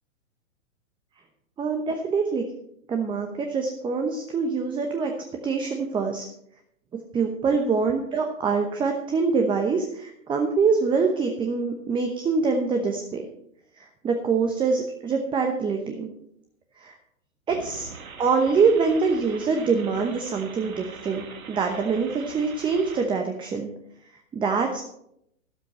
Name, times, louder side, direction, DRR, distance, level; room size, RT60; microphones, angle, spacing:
voice 1, 1.6-2.5 2.9-5.1 5.4-6.2 7.1-13.2 13.8-16.1 16.8-17.0 17.5-17.9 18.2-23.7 24.3-24.8, right 5 dB, 10° right, 4 dB, 0.9 m, -24 dB
sound 1, 17.5-23.1, right 5 dB, 85° right, 1.8 m, -43 dB
12.5 x 12.0 x 4.3 m, 0.75 s
hypercardioid pair, 120°, 41 cm